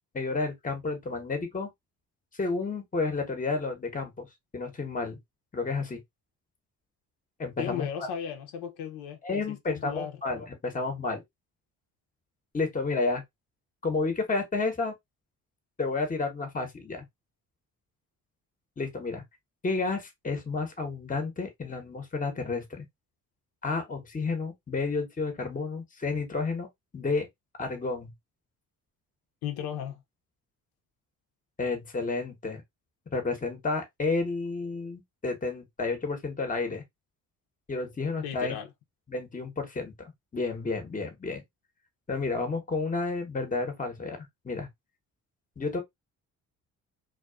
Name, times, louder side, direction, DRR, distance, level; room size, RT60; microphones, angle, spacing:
voice 1, 0.1-1.7 2.4-4.3 4.5-5.2 5.5-6.0 7.4-8.1 9.2-11.2 12.5-13.2 13.8-14.9 15.8-17.0 18.8-19.2 19.6-22.8 23.6-26.7 26.9-27.3 27.6-28.1 31.6-32.6 33.1-36.8 37.7-38.6 39.1-39.9 40.3-41.4 42.1-44.7 45.6-45.8, left 3 dB, 20° left, 0.9 m, -31 dB
voice 2, 7.6-10.2 29.4-30.0 38.2-38.7, left 9 dB, 70° left, 0.7 m, -36 dB
2.3 x 2.3 x 2.3 m
supercardioid pair, 60°, 40 cm